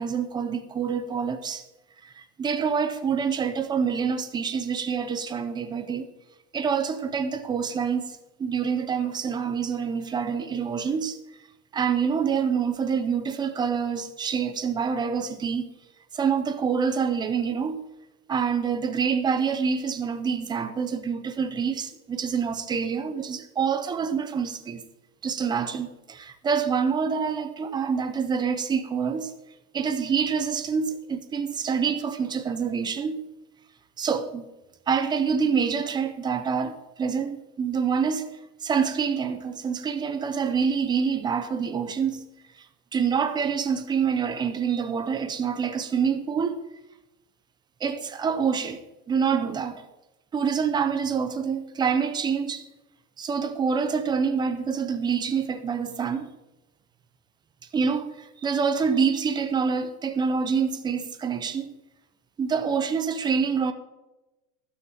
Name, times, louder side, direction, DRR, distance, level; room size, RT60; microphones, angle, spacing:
voice 1, 0.0-1.6 2.0-6.1 6.5-11.2 11.7-15.7 16.1-17.8 18.3-24.8 25.2-29.3 29.7-33.2 34.0-34.5 34.9-38.3 38.6-42.3 42.9-46.7 47.8-48.8 49.1-49.9 50.3-52.7 53.2-56.3 57.7-61.7 62.4-63.7, right 6 dB, 10° right, 0.4 m, -26 dB
12.0 x 6.5 x 7.7 m
supercardioid pair, 145°, 46 cm